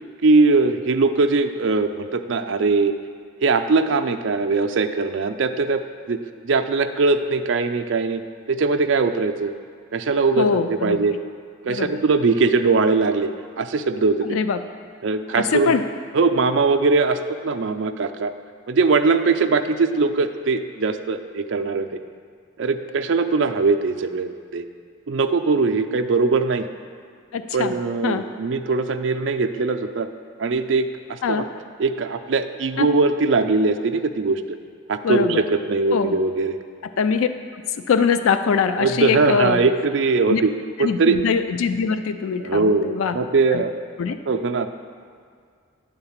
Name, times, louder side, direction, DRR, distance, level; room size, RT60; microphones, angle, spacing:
voice 1, 0.2-2.9 3.4-5.8 6.1-6.2 6.4-8.2 8.5-9.5 9.9-11.2 11.7-13.3 13.6-14.4 15.0-15.7 16.1-17.2 17.4-18.3 18.7-22.0 22.6-24.6 25.1-26.7 27.5-30.1 30.4-31.4 31.8-34.6 34.9-36.6 38.8-40.5 40.8-41.2 42.4-43.7 44.3-44.7, right 4 dB, 60° right, 7 dB, 0.4 m, -21 dB
voice 2, 10.4-11.1 11.7-12.0 14.2-14.6 15.3-15.8 27.3-27.7 28.0-28.2 31.2-31.5 32.8-32.9 35.0-35.4 35.9-36.2 37.0-37.3 37.5-37.6 37.9-39.6 40.3-40.4 40.8-43.2 43.5-43.6 44.0-44.2, left 5 dB, 80° left, 9 dB, 0.4 m, -22 dB
9.8 x 3.9 x 7.2 m, 2.1 s
head